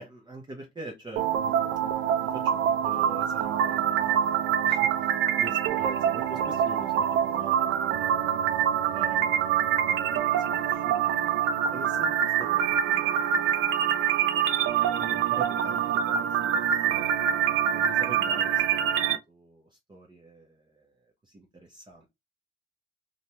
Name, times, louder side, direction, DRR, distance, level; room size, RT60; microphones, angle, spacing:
voice 1, 0.0-1.6 1.9-7.7 8.8-11.1 11.7-13.9 14.9-17.1 17.6-18.6 19.0-20.9 21.2-22.1, right 2 dB, 25° right, 0.7 m, -45 dB
sound 1, 1.2-19.2, right 9 dB, 90° right, 0.4 m, -25 dB
2.5 x 2.2 x 2.9 m
cardioid pair, 90°, 20 cm